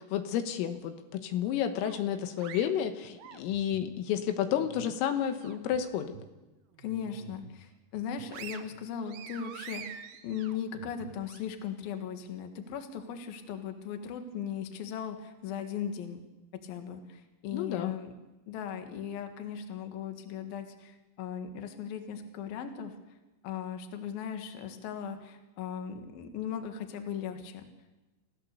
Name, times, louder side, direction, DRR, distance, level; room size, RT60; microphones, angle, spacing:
voice 1, 0.0-6.2 17.5-17.9, left 9 dB, 85° left, 7 dB, 3.9 m, -31 dB
sound 1, 1.8-3.9 4.3-5.8 6.1-6.3 6.8-7.6 8.0-11.4, right 9 dB, 75° right, 2.2 m, -47 dB
voice 2, 6.8-16.2 16.6-18.1 18.5-23.0 23.4-27.6, left 8 dB, 60° left, 6 dB, 2.9 m, -38 dB
29.0 x 15.5 x 6.8 m, 1.1 s
omnidirectional pair, 5.9 m